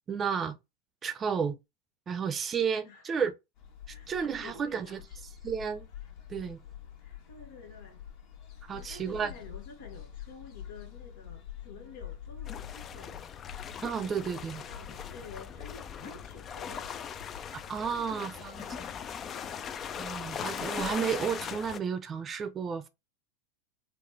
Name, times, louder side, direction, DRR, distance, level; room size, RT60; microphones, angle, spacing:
voice 1, 0.1-0.6 1.0-1.6 2.1-3.3 4.1-5.0 5.4-5.9 6.3-6.6 8.7-9.3 13.8-14.6 17.7-18.6 19.9-22.9, right 6 dB, 25° right, 0.6 m, -32 dB
sound 1, 3.6-20.9, left 10 dB, 55° left, 1.3 m, -48 dB
voice 2, 4.4-5.2 7.0-8.0 8.7-13.3 14.0-17.0 17.9-19.0, left 3 dB, 80° left, 1.1 m, -50 dB
sound 2, 12.4-21.8, left 7 dB, 30° left, 0.4 m, -40 dB
4.0 x 2.0 x 3.1 m
hypercardioid pair, 110°, 0 cm